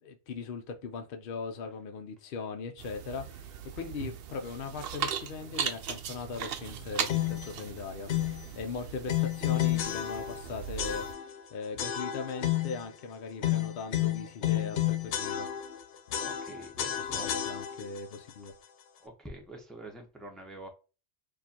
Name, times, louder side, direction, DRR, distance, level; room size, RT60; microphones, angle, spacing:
voice 1, 0.0-8.1 8.5-15.5 17.0-18.5, left 5 dB, 60° left, 0.7 m, -39 dB
sound 1, 2.8-11.1, right 8 dB, 65° right, 0.7 m, -38 dB
sound 2, 7.1-7.5 8.1-8.4 9.1-10.5 10.8-11.4 11.8-12.8 13.4-15.8 16.1-18.0, left 12 dB, 85° left, 0.9 m, -31 dB
voice 2, 16.2-17.3 19.0-20.7, right 1 dB, ahead, 0.8 m, -46 dB
4.6 x 2.5 x 2.7 m
omnidirectional pair, 1.2 m